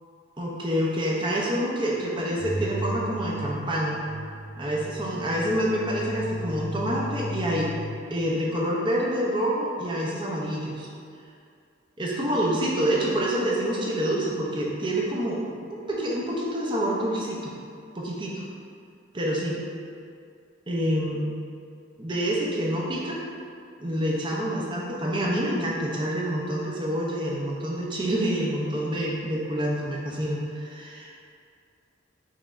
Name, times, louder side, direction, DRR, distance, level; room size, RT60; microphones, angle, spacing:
voice 1, 0.4-4.0 4.6-7.7 8.1-10.9 12.0-17.5 17.9-18.4 19.1-19.6 20.7-21.3 22.0-23.2 23.8-31.2, equal, 25° right, -4 dB, 0.5 m, -27 dB
sound 1, 2.4-8.0, equal, 35° left, 0.9 m, -35 dB
5.6 x 3.0 x 2.5 m, 2.3 s
head